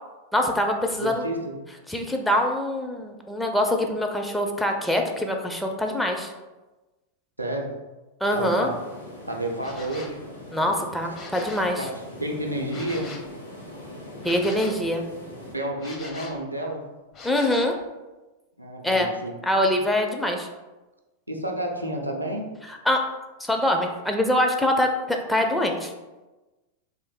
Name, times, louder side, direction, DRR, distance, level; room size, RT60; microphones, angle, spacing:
voice 1, 0.3-1.2 1.9-6.3 8.2-8.7 10.5-11.9 14.2-15.0 17.2-17.7 18.8-19.1 19.4-20.5 22.9-23.1 23.4-25.9, left 1 dB, 5° left, 2 dB, 0.4 m, -24 dB
voice 2, 1.0-1.5 7.4-7.7 8.3-8.8 9.3-10.2 11.8-11.9 12.2-13.1 15.5-16.8 18.6-19.3 19.7-19.8 21.3-22.5, right 1 dB, 85° right, 1 dB, 0.5 m, -30 dB
sound 1, 8.4-15.5, left 1 dB, 85° left, 0.8 m, -42 dB
sound 2, 9.6-10.2 11.0-11.7 12.7-13.3 14.2-14.9 15.8-16.4 17.1-17.8, left 3 dB, 30° left, 0.8 m, -41 dB
3.2 x 2.6 x 3.8 m, 1.1 s
figure-of-eight pair, 90°, 0 cm